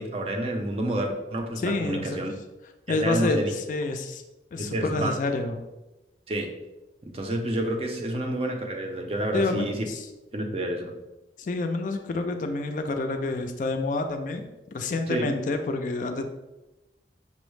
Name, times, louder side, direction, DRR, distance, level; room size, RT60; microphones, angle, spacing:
voice 1, 0.0-2.4 2.9-3.5 4.6-5.1 6.3-6.5 7.0-9.8 10.3-10.9 15.1-15.3, right 1 dB, 35° right, 2 dB, 0.4 m, -29 dB
voice 2, 1.6-2.3 2.9-4.2 4.5-5.6 9.3-10.1 11.4-14.4 14.7-16.2, left 2 dB, 45° left, 6 dB, 0.3 m, -28 dB
5.3 x 2.0 x 3.1 m, 1.0 s
head